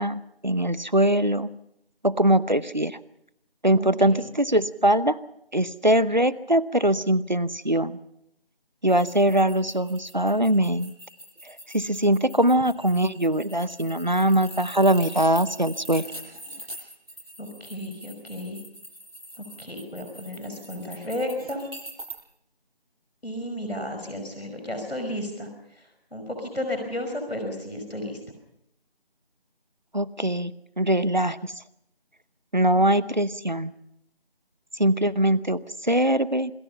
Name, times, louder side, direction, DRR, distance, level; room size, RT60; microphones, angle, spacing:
voice 1, 0.0-1.5 2.0-3.0 3.6-5.2 5.5-8.0 8.8-10.9 11.4-16.0 29.9-31.5 32.5-33.7 34.8-36.5, right 1 dB, 50° right, 18 dB, 0.8 m, -22 dB
voice 2, 3.7-4.2 17.4-18.6 19.4-21.6 23.2-28.2, left 1 dB, 90° left, 5 dB, 5.4 m, -33 dB
sound 1, 8.9-22.2, right 1 dB, 70° right, 7.5 m, -43 dB
27.0 x 20.0 x 5.6 m, 0.78 s
figure-of-eight pair, 175°, 30 cm